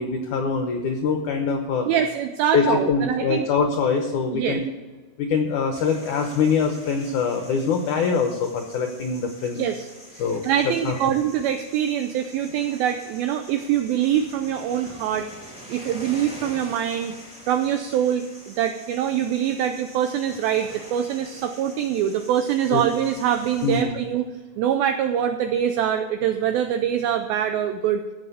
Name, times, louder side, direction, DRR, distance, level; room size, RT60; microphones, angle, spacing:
voice 1, 0.0-1.9 2.5-4.6 5.2-9.6 10.2-11.0 22.7-22.8 23.6-23.9, left 5 dB, 85° left, 4 dB, 1.7 m, -23 dB
voice 2, 1.9-3.5 4.3-4.6 9.6-9.9 10.1-15.3 15.7-17.2 17.5-24.3 24.6-28.0, right 9 dB, 85° right, 7 dB, 2.1 m, -24 dB
sound 1, 5.7-23.8, equal, 5° right, 0.5 m, -45 dB
15.5 x 5.8 x 6.8 m, 1.3 s
omnidirectional pair, 5.0 m